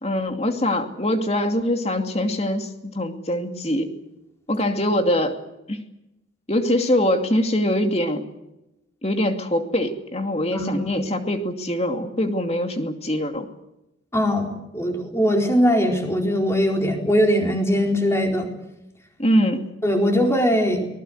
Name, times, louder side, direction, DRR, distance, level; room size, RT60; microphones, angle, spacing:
voice 1, 0.0-3.9 4.5-5.4 5.7-5.8 6.5-8.3 9.0-13.5 19.2-19.6, left 1 dB, 30° left, 5 dB, 2.5 m, -23 dB
voice 2, 10.5-10.9 14.1-14.5 14.7-18.5 19.8-20.9, equal, 15° left, 2 dB, 4.2 m, -20 dB
24.0 x 20.0 x 8.0 m, 0.91 s
head